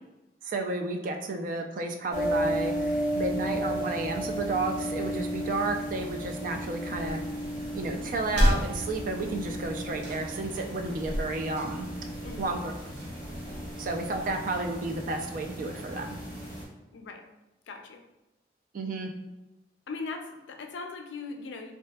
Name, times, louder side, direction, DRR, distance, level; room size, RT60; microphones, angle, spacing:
voice 1, 0.4-7.2 7.7-11.9 12.4-12.7 13.8-16.2 18.7-19.1, right 2 dB, 45° right, 4 dB, 0.3 m, -32 dB
sound 1, 2.1-16.6, equal, 30° right, 1.0 m, -34 dB
sound 2, 6.9-14.4, equal, 85° right, 0.8 m, -33 dB
voice 2, 16.9-17.3 17.7-18.0 19.9-21.7, left 4 dB, 80° left, 4 dB, 0.4 m, -39 dB
3.3 x 2.7 x 2.2 m, 0.99 s
head